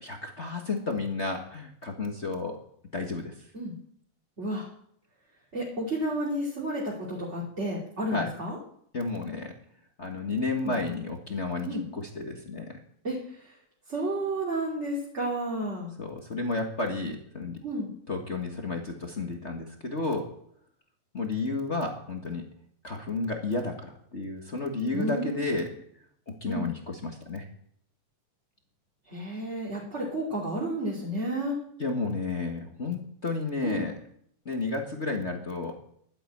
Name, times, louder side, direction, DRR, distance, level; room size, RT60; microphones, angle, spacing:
voice 1, 0.0-2.6 2.9-3.3 8.1-8.3 8.9-9.5 10.0-12.7 16.0-17.6 18.1-20.3 21.1-22.4 22.8-25.7 26.3-27.4 31.8-33.9 34.4-35.7, left 3 dB, 35° left, 2 dB, 1.1 m, -32 dB
voice 2, 4.4-4.7 5.5-8.6 10.6-10.8 11.6-11.8 13.0-13.5 13.9-15.9 17.6-17.9 24.9-25.6 26.5-26.7 29.1-31.6 33.6-33.9, right 1 dB, 25° right, -5 dB, 2.7 m, -31 dB
11.5 x 9.9 x 8.6 m, 0.67 s
omnidirectional pair, 3.5 m